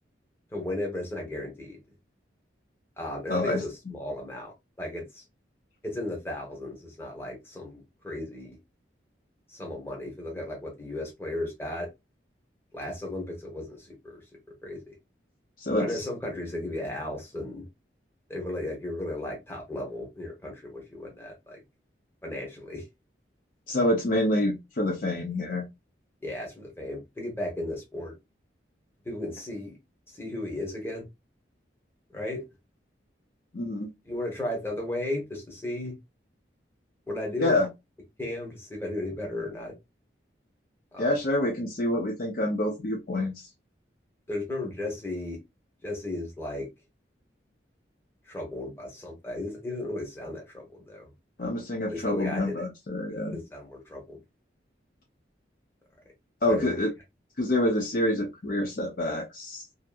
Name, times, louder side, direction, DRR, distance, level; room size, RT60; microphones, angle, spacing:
voice 1, 0.5-1.8 3.0-5.2 5.8-8.6 9.5-11.9 12.7-14.2 14.6-14.9 15.8-17.6 18.3-21.6 22.2-22.9 26.2-28.1 29.0-29.7 30.1-31.0 32.1-32.4 34.1-35.9 37.1-37.6 38.2-39.7 40.9-41.1 44.3-45.4 45.8-46.7 48.3-51.0 51.9-52.6 53.3-54.2 56.4-56.8, left 1 dB, 15° left, 0.9 m, -35 dB
voice 2, 3.3-3.6 15.6-16.0 23.7-25.6 33.5-33.9 37.4-37.7 41.0-43.5 51.4-53.4 56.4-56.9 57.4-59.6, left 1 dB, 45° left, 0.5 m, -27 dB
2.6 x 2.6 x 2.3 m
head